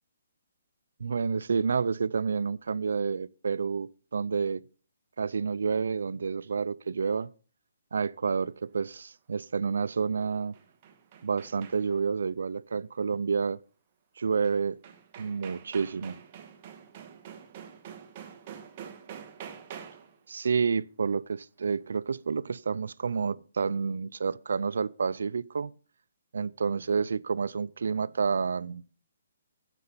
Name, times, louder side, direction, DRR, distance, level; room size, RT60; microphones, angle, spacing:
voice 1, 1.0-4.6 5.2-7.3 7.9-10.6 11.2-13.6 14.2-14.8 15.2-16.2 20.3-25.7 26.3-28.8, right 5 dB, 80° right, 0.4 m, -29 dB
sound 1, 10.3-12.1 14.4-14.5 14.8-20.2, right 8 dB, 35° right, 1.6 m, -46 dB
9.9 x 6.8 x 6.7 m
hypercardioid pair, 160°, 0 cm